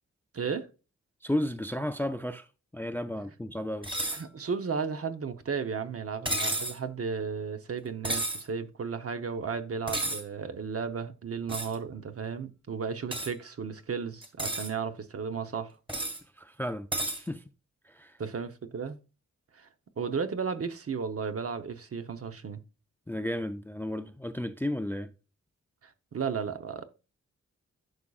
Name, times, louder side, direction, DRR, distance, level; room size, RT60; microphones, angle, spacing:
voice 1, 0.3-0.7 4.1-15.8 18.2-19.0 19.5-19.7 20.0-22.6 25.8-26.8, right 5 dB, 50° right, 0.8 m, -34 dB
voice 2, 1.2-2.5 2.7-3.9 16.4-17.4 17.8-18.2 23.1-25.1, left 1 dB, 5° left, 0.4 m, -33 dB
sound 1, 3.8-4.2 6.3-6.8 8.0-8.4 9.9-10.2 11.5-11.8 13.1-13.3 14.2-14.7 15.9-16.2 16.9-17.2, right 1 dB, 15° right, 1.8 m, -31 dB
11.0 x 4.8 x 2.3 m
wide cardioid pair, 85°, 30 cm